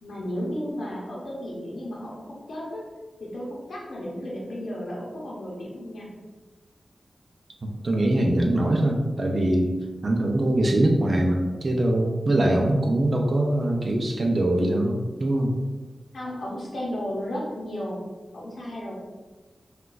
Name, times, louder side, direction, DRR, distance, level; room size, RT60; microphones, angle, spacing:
voice 1, 0.0-2.8 3.2-6.1 16.1-18.0 18.3-18.9, equal, 80° left, -5 dB, 0.7 m, -34 dB
voice 2, 7.6-9.7 10.0-15.6, right 1 dB, 50° right, 1 dB, 0.4 m, -23 dB
3.8 x 2.3 x 2.4 m, 1.2 s
wide cardioid pair, 95°, 0 cm